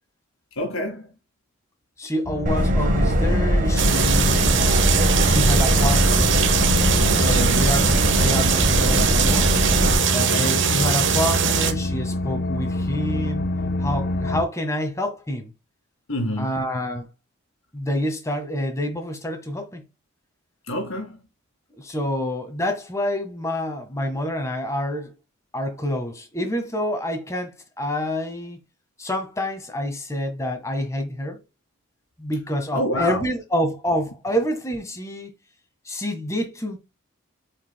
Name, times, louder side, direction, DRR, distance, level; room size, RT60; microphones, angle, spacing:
voice 1, 0.6-1.1 7.3-7.7 10.1-10.7 16.1-16.7 20.7-21.2 32.7-33.3, left 1 dB, 70° left, 2.2 m, -28 dB
voice 2, 2.0-4.7 5.2-6.3 7.2-9.5 10.4-13.5 13.8-15.5 16.4-17.1 17.7-19.8 21.8-25.1 25.5-28.6 29.0-31.4 32.2-35.3 35.8-36.8, left 1 dB, 15° left, 1.6 m, -27 dB
sound 1, 2.2-14.4, left 2 dB, 45° left, 0.6 m, -28 dB
Subway metro underground, 2.5-10.0, right 1 dB, 35° right, 1.3 m, -21 dB
sound 2, 3.8-11.7, right 6 dB, 55° right, 1.1 m, -21 dB
8.4 x 5.1 x 2.2 m
head